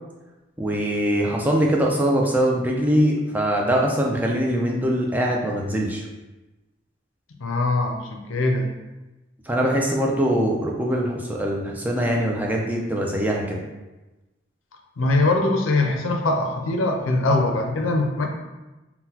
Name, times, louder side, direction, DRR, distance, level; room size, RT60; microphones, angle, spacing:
voice 1, 0.6-6.0 9.5-13.6, equal, 10° right, -1 dB, 0.3 m, -22 dB
voice 2, 7.4-8.7 15.0-18.3, left 2 dB, 85° left, 3 dB, 0.5 m, -22 dB
3.8 x 2.1 x 2.7 m, 1.1 s
head